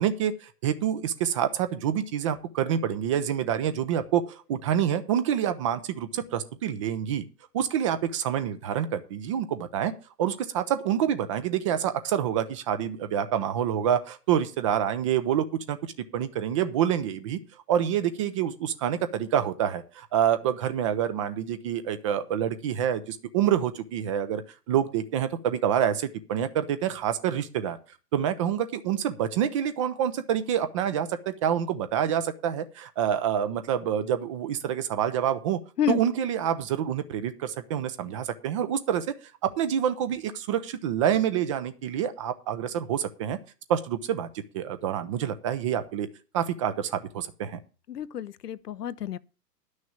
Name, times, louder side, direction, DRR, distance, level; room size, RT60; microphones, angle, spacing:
voice 1, 0.0-7.3 7.5-9.9 10.2-15.8 16.1-17.4 17.7-24.4 24.7-27.8 28.1-35.6 35.9-39.2 39.4-43.4 43.7-46.1 46.3-47.6, right 9 dB, 20° right, 0.5 m, -27 dB
voice 2, 47.9-49.2, left 9 dB, 75° left, 0.8 m, -29 dB
11.0 x 6.4 x 7.1 m
figure-of-eight pair, 120°, 48 cm